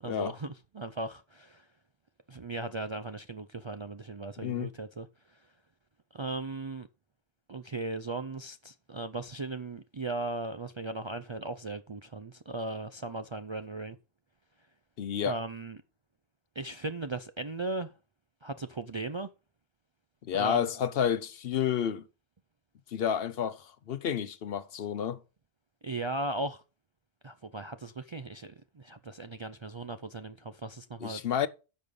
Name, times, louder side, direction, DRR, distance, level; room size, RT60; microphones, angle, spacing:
voice 1, 0.0-1.7 2.3-5.1 5.3-5.4 6.1-6.9 7.5-14.0 15.2-15.8 16.6-17.9 18.4-19.3 20.3-20.7 25.8-26.6 27.2-31.2, right 2 dB, 40° right, 0.4 m, -37 dB
voice 2, 4.4-4.7 15.0-15.4 20.3-22.0 22.9-25.2 31.0-31.5, left 8 dB, 65° left, 0.9 m, -30 dB
10.0 x 6.4 x 5.4 m
omnidirectional pair, 1.1 m